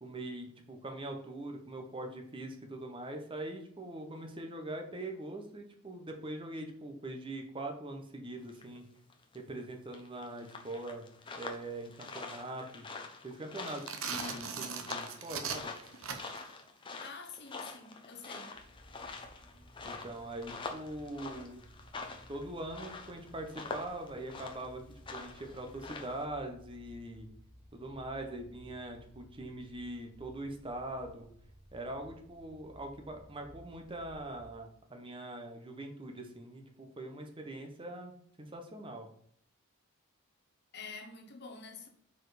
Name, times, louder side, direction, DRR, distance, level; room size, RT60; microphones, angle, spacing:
voice 1, 0.0-8.9 9.3-11.1 11.3-12.9 13.2-15.7 19.8-21.7 22.3-24.8 25.1-27.3 27.7-31.3 31.7-38.1 38.4-39.1, right 1 dB, 25° right, 0.8 m, -42 dB
sound 1, 8.5-8.8 9.1-9.4 9.9-26.2, left 3 dB, 20° left, 0.7 m, -45 dB
sound 2, 13.6-16.5, right 6 dB, 65° right, 0.8 m, -39 dB
voice 2, 17.0-18.6 40.7-41.9, left 4 dB, 50° left, 0.9 m, -47 dB
sound 3, 18.5-34.7, equal, 5° left, 1.2 m, -57 dB
4.7 x 4.2 x 4.9 m
head